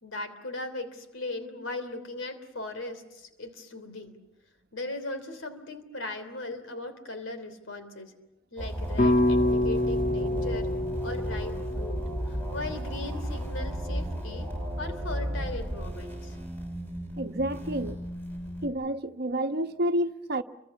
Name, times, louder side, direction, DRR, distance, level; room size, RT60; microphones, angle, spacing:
voice 1, 0.0-4.2 4.7-8.1 8.5-10.8 11.0-16.4, left 2 dB, 90° left, 3.2 m, -38 dB
sound 1, 8.6-18.7, equal, 10° left, 6.9 m, -34 dB
sound 2, 9.0-13.3, left 1 dB, 50° left, 1.3 m, -27 dB
voice 2, 17.2-18.0 18.6-20.4, right 1 dB, 55° right, 1.1 m, -29 dB
30.0 x 24.0 x 7.1 m
head